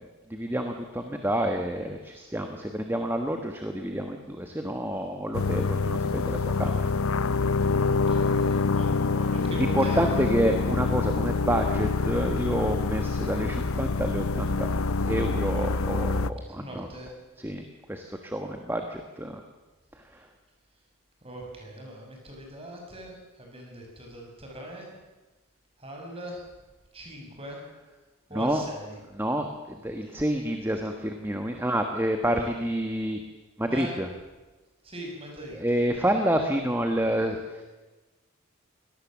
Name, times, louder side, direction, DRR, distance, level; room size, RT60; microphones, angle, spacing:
voice 1, 0.3-6.8 7.2-7.3 9.5-14.7 15.0-16.9 17.4-19.4 20.1-20.3 28.3-28.6 29.2-33.2 33.6-34.1 35.6-37.6, right 1 dB, 10° right, 5 dB, 1.4 m, -28 dB
sound 1, 5.3-16.3, left 4 dB, 75° left, 0.7 m, -26 dB
voice 2, 7.7-10.3 16.5-17.1 21.2-24.9 25.8-26.5 26.9-27.6 28.3-29.0 33.7-34.0 34.8-35.8, right 1 dB, 25° right, 0 dB, 6.1 m, -41 dB
24.0 x 18.5 x 7.5 m, 1.2 s
head